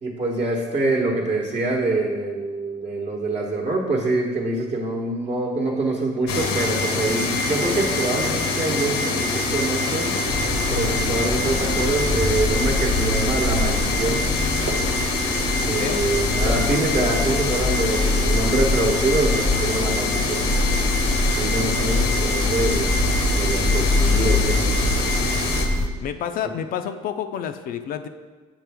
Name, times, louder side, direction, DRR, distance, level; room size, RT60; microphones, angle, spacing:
voice 1, 0.0-10.2 10.7-14.2 15.7-20.5 21.4-24.8, right 2 dB, 40° right, -2 dB, 1.1 m, -25 dB
sound 1, 6.3-25.7, left 2 dB, 90° left, 0.9 m, -25 dB
sound 2, 10.3-25.9, left 2 dB, 5° left, 0.6 m, -25 dB
Clapping, 11.4-11.7 12.8-13.0 14.2-14.3 14.7-14.9 16.0-16.1, right 4 dB, 85° right, 0.8 m, -34 dB
voice 2, 26.0-28.1, left 9 dB, 60° left, 8 dB, 0.4 m, -29 dB
7.0 x 5.9 x 3.5 m, 1.4 s
cardioid pair, 110°, 17 cm